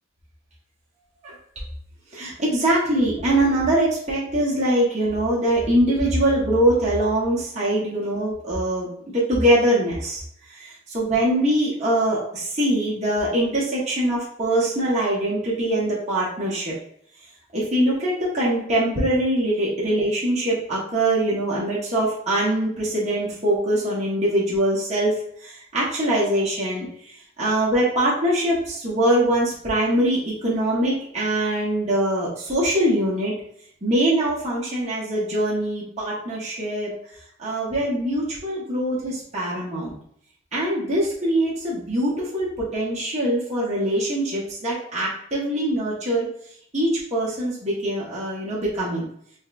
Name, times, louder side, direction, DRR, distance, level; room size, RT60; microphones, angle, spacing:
voice 1, 2.1-10.2 10.6-16.7 17.5-25.1 25.4-26.9 27.4-33.3 33.8-36.9 37.4-40.0 40.5-46.3 46.7-49.1, right 1 dB, 35° right, -7 dB, 1.1 m, -23 dB
5.1 x 2.2 x 2.5 m, 0.67 s
head